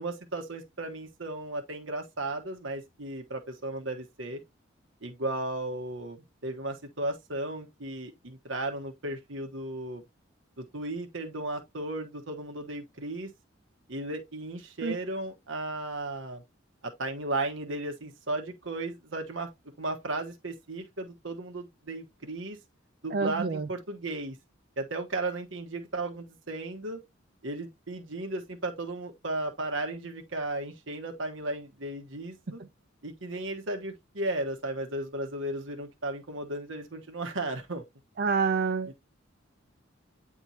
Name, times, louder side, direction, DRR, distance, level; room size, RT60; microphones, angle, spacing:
voice 1, 0.0-4.4 5.0-10.0 10.6-13.3 13.9-16.4 16.8-19.5 19.8-22.6 23.0-24.4 24.8-27.0 27.4-32.6 33.0-37.8, right 2 dB, 70° right, 1.3 m, -35 dB
voice 2, 23.1-23.7 38.2-38.9, right 5 dB, 50° right, 0.6 m, -27 dB
9.3 x 3.5 x 2.9 m
head